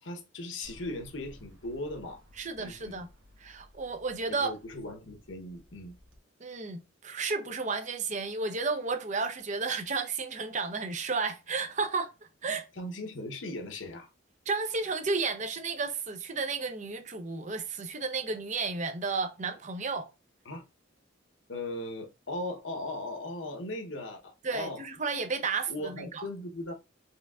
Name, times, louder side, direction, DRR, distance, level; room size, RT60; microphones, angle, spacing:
voice 1, 0.0-2.2 2.6-3.0 4.3-6.0 12.8-14.1 20.5-20.6 21.5-24.8 25.7-26.7, left 1 dB, 70° left, 0.9 m, -38 dB
sound 1, 0.6-6.2, left 1 dB, 75° right, 1.2 m, -56 dB
voice 2, 2.4-3.1 3.4-4.5 6.4-12.7 14.5-20.1 24.4-26.3, right 4 dB, 40° right, 0.6 m, -32 dB
4.4 x 3.4 x 2.4 m
head